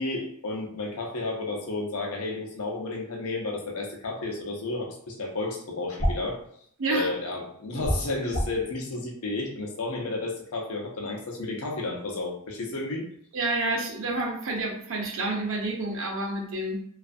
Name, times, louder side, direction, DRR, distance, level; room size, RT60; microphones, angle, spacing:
voice 1, 0.0-6.4 6.9-13.1, left 2 dB, 75° left, 0 dB, 0.6 m, -32 dB
sound 1, 6.0-6.3 7.8-8.6, equal, 30° left, 0.8 m, -26 dB
voice 2, 13.3-16.8, right 2 dB, 60° right, 1 dB, 0.6 m, -29 dB
2.5 x 2.4 x 2.4 m, 0.66 s
head